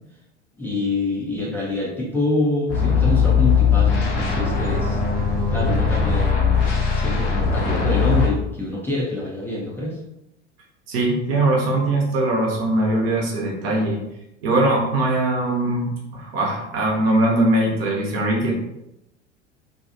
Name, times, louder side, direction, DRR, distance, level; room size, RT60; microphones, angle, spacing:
voice 1, 0.6-5.0 5.5-10.0, left 2 dB, 5° left, -7 dB, 0.6 m, -26 dB
sound 1, 2.7-8.3, left 6 dB, 50° left, 0.8 m, -19 dB
voice 2, 10.9-14.0 14.4-18.6, right 2 dB, 55° right, -1 dB, 0.9 m, -21 dB
2.8 x 2.3 x 2.6 m, 0.86 s
figure-of-eight pair, 80°, 37 cm